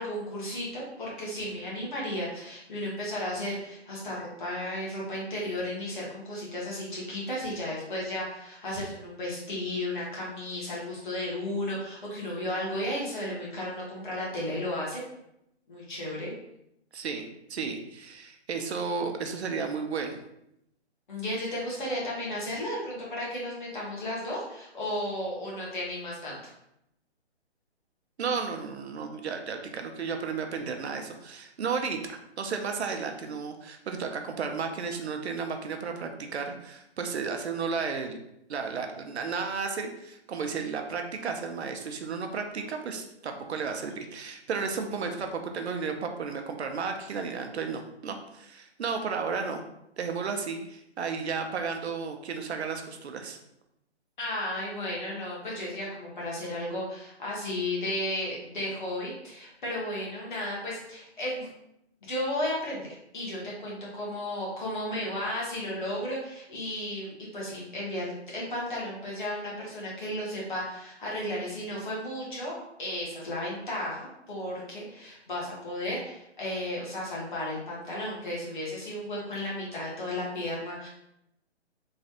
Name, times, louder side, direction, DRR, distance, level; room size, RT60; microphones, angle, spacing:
voice 1, 0.0-15.0 15.7-16.3 21.1-26.5 54.2-61.5 62.1-72.5 72.8-80.9, left 1 dB, 45° left, -5 dB, 1.2 m, -34 dB
voice 2, 16.9-20.2 28.2-38.2 38.5-49.6 50.0-53.4, right 5 dB, 70° right, 5 dB, 0.5 m, -33 dB
3.1 x 2.4 x 2.8 m, 0.80 s
hypercardioid pair, 170°, 34 cm